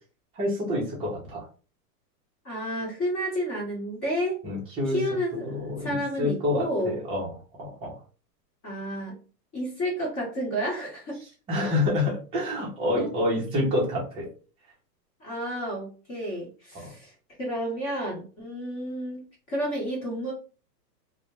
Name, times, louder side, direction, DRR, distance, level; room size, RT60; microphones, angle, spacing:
voice 1, 0.3-1.5 4.4-7.3 7.6-8.0 11.5-14.3 16.7-16.9, left 1 dB, 10° right, -4 dB, 0.5 m, -28 dB
voice 2, 2.4-4.4 4.9-7.0 8.6-9.1 9.5-11.2 12.9-13.1 15.2-17.1 17.4-20.3, equal, 25° left, -4 dB, 1.0 m, -31 dB
2.1 x 2.1 x 2.9 m, 0.37 s
hypercardioid pair, 135°, 49 cm